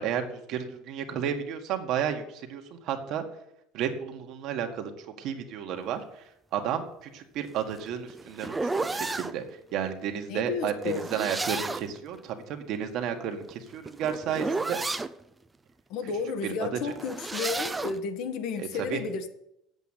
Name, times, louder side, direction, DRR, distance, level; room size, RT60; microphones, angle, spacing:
voice 1, 0.0-3.2 3.7-14.8 16.0-16.9 18.6-19.0, right 8 dB, 55° right, 5 dB, 1.8 m, -32 dB
sound 1, 7.5-9.3 10.8-12.0 13.4-15.1 16.9-18.0, right 3 dB, 10° right, 0.5 m, -32 dB
voice 2, 10.3-11.0 15.9-19.3, left 5 dB, 60° left, 8 dB, 1.5 m, -32 dB
8.3 x 8.1 x 9.1 m, 0.81 s
cardioid pair, 150°, 0 cm